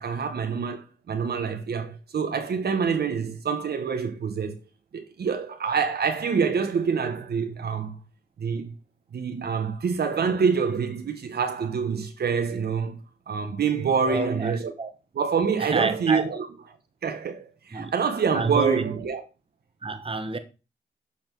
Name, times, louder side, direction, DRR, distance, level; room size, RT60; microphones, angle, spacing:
voice 1, 0.0-4.6 4.9-8.0 8.4-8.7 9.1-13.0 13.3-14.7 15.1-16.5 17.0-19.2, right 6 dB, 65° right, 0.9 m, -26 dB
voice 2, 14.1-14.9 15.6-16.3 17.7-17.9 18.3-18.8 19.8-20.4, right 3 dB, 30° right, 1.1 m, -28 dB
6.9 x 3.9 x 4.5 m
cardioid pair, 50°, 18 cm